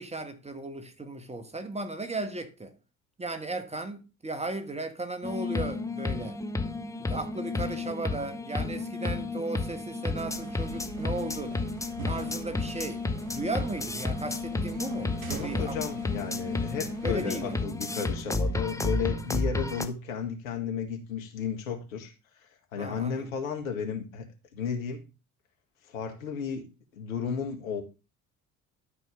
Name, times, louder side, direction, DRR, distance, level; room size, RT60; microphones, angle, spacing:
voice 1, 0.0-2.7 3.2-6.4 7.0-11.6 12.0-13.0 13.3-15.8 17.0-17.6 22.7-23.3, right 2 dB, 15° right, 1.4 m, -36 dB
sound 1, 5.2-19.9, left 3 dB, 10° left, 1.0 m, -32 dB
sound 2, 10.1-17.7, right 5 dB, 85° right, 0.8 m, -45 dB
voice 2, 15.3-22.1 22.7-24.3 24.5-25.1 25.9-26.7 26.9-27.8, left 6 dB, 75° left, 1.7 m, -33 dB
12.0 x 4.6 x 5.0 m
figure-of-eight pair, 55°, 41 cm